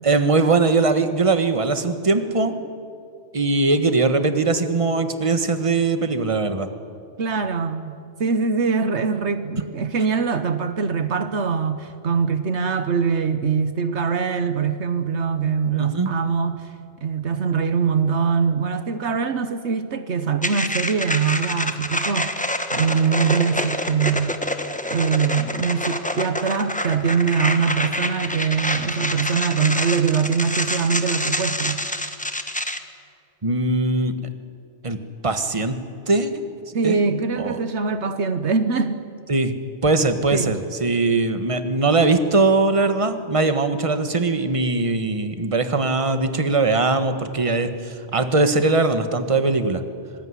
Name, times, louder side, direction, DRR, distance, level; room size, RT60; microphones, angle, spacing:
voice 1, 0.0-2.5 3.3-6.7 15.8-16.1 33.4-34.2 34.8-35.8 36.1-36.3 36.8-37.0 37.4-37.6 39.3-39.5 39.8-49.8, right 3 dB, 30° right, 9 dB, 1.5 m, -20 dB
voice 2, 7.2-16.7 17.0-22.3 22.7-24.4 24.9-31.9 36.7-39.0 40.3-40.5, right 5 dB, 70° right, 10 dB, 1.3 m, -23 dB
sound 1, 20.4-32.8, left 1 dB, 5° left, 1.3 m, -27 dB
25.0 x 20.5 x 9.8 m, 2.4 s
omnidirectional pair, 1.2 m